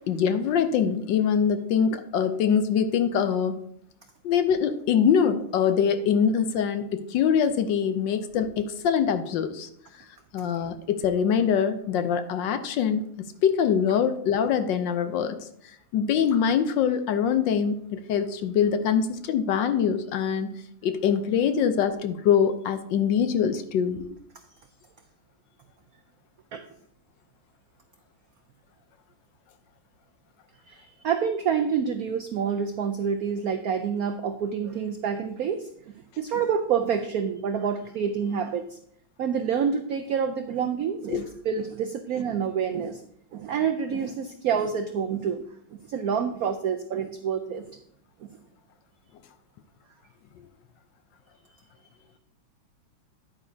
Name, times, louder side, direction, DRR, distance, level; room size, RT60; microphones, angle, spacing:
voice 1, 0.0-3.6 4.2-9.7 10.3-13.0 13.4-15.4 15.9-20.5 20.8-24.1 41.1-41.2, left 7 dB, 70° left, 9 dB, 1.3 m, -24 dB
voice 2, 30.7-35.7 36.2-38.8 39.2-43.0 43.3-45.4 45.9-47.8, right 7 dB, 85° right, 8 dB, 0.8 m, -27 dB
9.6 x 8.9 x 2.7 m, 0.68 s
omnidirectional pair, 2.2 m